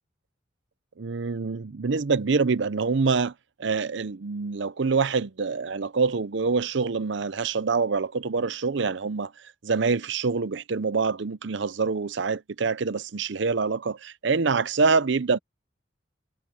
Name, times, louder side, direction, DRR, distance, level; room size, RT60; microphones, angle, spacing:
voice 1, 1.0-3.3 3.6-9.3 9.6-15.4, right 4 dB, 65° right, 0.6 m, -25 dB
head